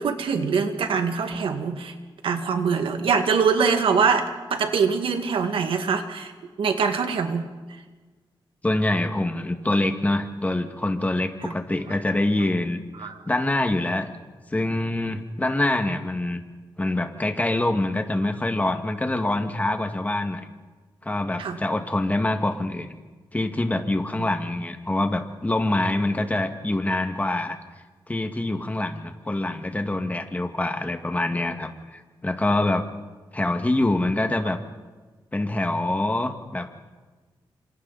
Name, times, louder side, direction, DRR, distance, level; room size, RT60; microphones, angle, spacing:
voice 1, 0.0-1.9 2.2-6.3 6.6-7.5 11.4-11.5 13.0-13.2 21.4-21.6 24.2-24.3, right 5 dB, 85° right, 6 dB, 2.2 m, -23 dB
voice 2, 8.6-14.1 14.5-16.4 16.8-20.5 21.0-22.9 23.3-27.6 28.1-32.9 33.3-34.6 35.3-36.7, left 2 dB, 15° left, 5 dB, 2.1 m, -25 dB
29.5 x 26.5 x 4.3 m, 1.3 s
wide cardioid pair, 100°, 9 cm